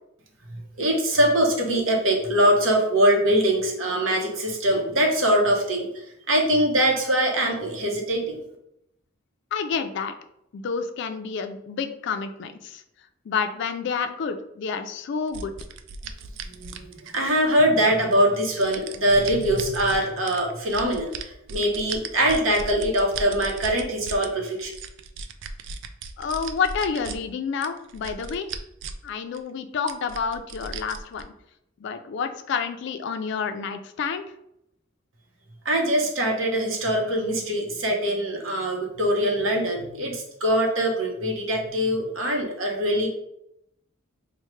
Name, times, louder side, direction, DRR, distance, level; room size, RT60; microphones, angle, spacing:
voice 1, 0.8-8.4 16.5-24.7 35.6-43.1, right 1 dB, 85° right, 1 dB, 0.8 m, -23 dB
voice 2, 9.5-10.1 10.5-12.8 13.3-15.5 26.2-28.5 29.0-31.3 31.8-34.2, left 5 dB, 65° left, 9 dB, 0.3 m, -29 dB
sound 1, 15.3-17.5 18.1-20.0 20.3-24.3 24.6-27.2 27.6-29.1 29.3-29.4 29.9-31.2, right 5 dB, 65° right, 0.3 m, -36 dB
4.3 x 2.1 x 3.1 m, 0.80 s
head